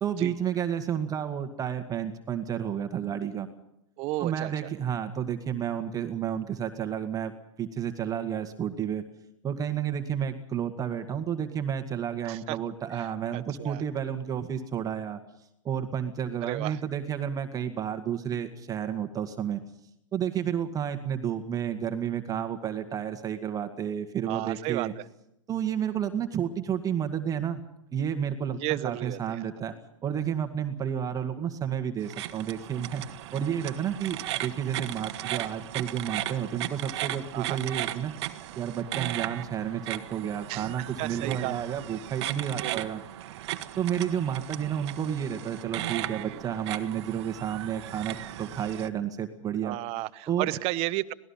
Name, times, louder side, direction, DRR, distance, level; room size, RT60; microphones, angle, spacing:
voice 1, 0.0-3.5 4.2-7.3 7.6-9.0 9.4-15.2 15.6-19.6 20.1-24.9 25.5-27.6 27.9-29.7 30.0-33.0 33.3-38.1 38.6-43.0 43.8-49.8 50.3-50.5, right 9 dB, 20° right, 7 dB, 1.8 m, -31 dB
voice 2, 4.0-4.5 12.2-12.6 12.9-13.1 13.3-13.8 16.4-16.8 24.3-25.0 28.6-29.5 37.3-37.6 40.5-41.5 42.6-43.1 46.1-46.4 49.6-51.1, right 18 dB, 40° right, 16 dB, 1.0 m, -33 dB
sound 1, 32.0-48.9, right 14 dB, 55° right, 1.3 m, -36 dB
26.0 x 19.0 x 5.7 m, 0.82 s
hypercardioid pair, 120°, 17 cm